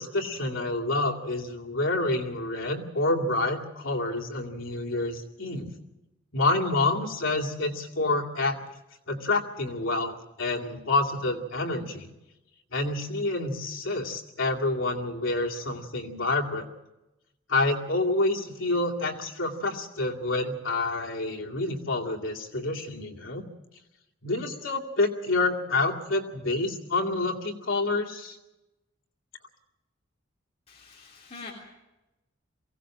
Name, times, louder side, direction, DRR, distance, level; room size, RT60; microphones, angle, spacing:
voice 1, 0.0-5.7 6.3-8.6 9.1-12.1 12.7-16.6 17.5-23.4 24.2-28.4, left 2 dB, 90° left, 0 dB, 2.3 m, -28 dB
voice 2, 30.7-31.5, left 4 dB, 35° left, -3 dB, 3.4 m, -44 dB
23.0 x 16.5 x 7.6 m, 0.99 s
head